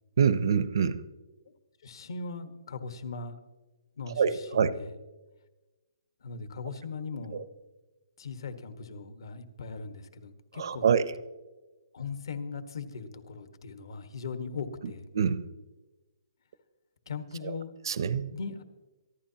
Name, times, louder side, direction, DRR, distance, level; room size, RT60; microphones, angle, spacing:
voice 1, 0.2-1.0 4.2-4.7 7.3-7.4 10.6-11.0 15.1-15.4 17.9-18.3, right 7 dB, 55° right, 14 dB, 0.7 m, -25 dB
voice 2, 1.8-3.4 4.0-4.9 6.2-7.4 8.2-10.9 11.9-15.1 17.1-17.7 18.2-18.6, left 4 dB, 65° left, 9 dB, 1.4 m, -39 dB
24.5 x 11.5 x 2.9 m, 1.2 s
hypercardioid pair, 170°, 3 cm